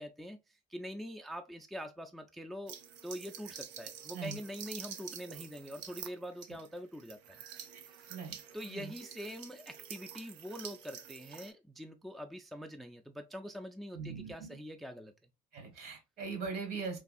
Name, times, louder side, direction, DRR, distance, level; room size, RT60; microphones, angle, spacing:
voice 1, 0.0-2.8 3.0-7.4 7.9-8.1 8.5-15.1, equal, ahead, 0.4 m, -44 dB
sound 1, 2.7-11.5, right 8 dB, 90° right, 0.5 m, -48 dB
voice 2, 13.9-14.6 15.5-17.0, right 5 dB, 65° right, 1.6 m, -41 dB
3.4 x 2.3 x 2.5 m
supercardioid pair, 80°, 18 cm